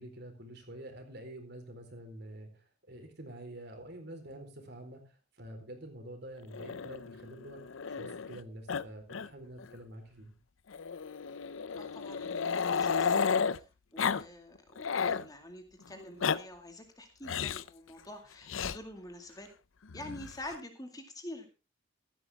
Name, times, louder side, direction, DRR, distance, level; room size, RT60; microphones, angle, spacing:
voice 1, 0.0-7.6 8.0-10.3, right 1 dB, 55° right, 5 dB, 4.2 m, -47 dB
Growling, 6.5-8.4 8.7-8.8 9.1-9.3 9.6-9.7 10.7-13.6 14.0-14.2 14.6-15.3 16.0-16.4 17.3-17.7 18.5-18.8 19.9-20.6, left 6 dB, 80° left, 0.6 m, -32 dB
voice 2, 11.8-19.5 19.9-21.5, left 1 dB, 20° left, 5 dB, 2.2 m, -47 dB
15.0 x 13.0 x 3.6 m, 0.30 s
head